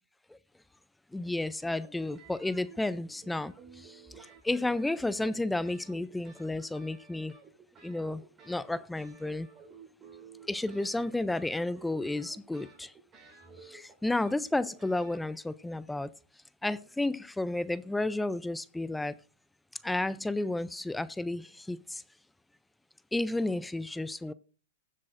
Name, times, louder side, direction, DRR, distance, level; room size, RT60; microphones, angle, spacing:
voice 1, 1.1-3.5 3.8-4.0 4.4-7.3 7.8-9.5 10.5-12.9 13.7-16.1 16.6-19.2 19.8-22.0 23.1-24.3, left 2 dB, 5° left, 0.4 m, -32 dB
sound 1, 1.6-15.2, right 5 dB, 25° right, 4.1 m, -54 dB
20.5 x 7.5 x 2.5 m
hypercardioid pair, 120°, 0 cm